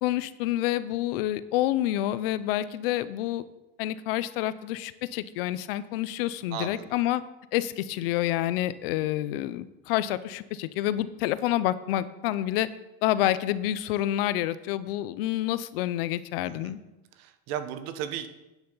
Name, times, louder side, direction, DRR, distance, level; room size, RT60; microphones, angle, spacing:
voice 1, 0.0-3.4 3.8-7.2 7.5-12.7 13.0-16.8, left 14 dB, 75° left, 15 dB, 0.7 m, -28 dB
voice 2, 6.5-6.9 16.5-16.7 17.2-18.3, right 9 dB, 60° right, 10 dB, 1.1 m, -35 dB
10.5 x 9.4 x 4.0 m, 1.0 s
supercardioid pair, 140°, 29 cm